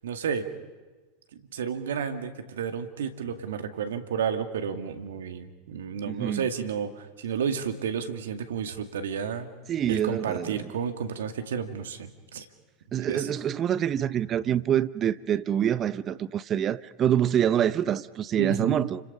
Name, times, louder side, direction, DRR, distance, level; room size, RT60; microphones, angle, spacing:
voice 1, 0.0-0.5 1.3-9.5 9.9-12.5 13.1-13.3 18.4-18.8, right 7 dB, 75° right, 2.0 m, -31 dB
voice 2, 6.0-6.4 9.7-10.6 12.9-19.0, right 10 dB, 35° right, 0.8 m, -26 dB
29.5 x 26.0 x 5.4 m
hypercardioid pair, 90°, 0 cm